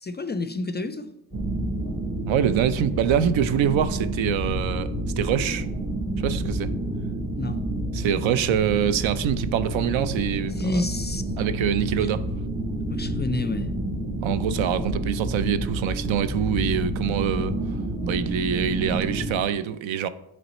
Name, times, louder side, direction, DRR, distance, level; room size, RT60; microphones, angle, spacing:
voice 1, 0.0-1.1 7.4-7.6 10.5-11.3 12.9-13.7, left 2 dB, 25° left, 0.3 m, -29 dB
sound 1, 1.3-19.3, right 1 dB, 45° right, 1.9 m, -29 dB
voice 2, 2.3-4.9 5.2-5.7 6.2-6.7 7.9-10.8 11.4-12.3 14.2-17.5 18.0-20.1, right 9 dB, 75° right, 0.5 m, -24 dB
7.7 x 3.3 x 4.1 m
cardioid pair, 60°, 47 cm